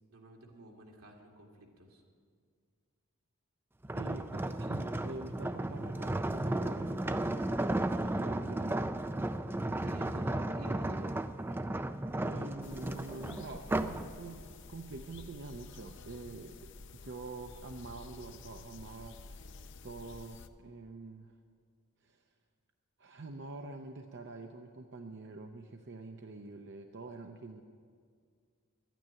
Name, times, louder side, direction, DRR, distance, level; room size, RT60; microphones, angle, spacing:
voice 1, 0.1-2.0 8.0-8.4 9.8-11.1, right 1 dB, 80° right, 0 dB, 2.3 m, -51 dB
sound 1, 3.8-14.1 14.5-14.8, right 1 dB, 10° right, 0.3 m, -34 dB
voice 2, 3.9-7.4 8.2-8.9 12.2-16.7 17.0-19.4 19.8-21.3 22.0-22.3 23.0-27.6, right 3 dB, 50° right, 4 dB, 0.7 m, -46 dB
sound 2, 12.6-20.5, left 3 dB, 55° left, 0.6 m, -51 dB
12.0 x 9.2 x 9.8 m, 2.1 s
head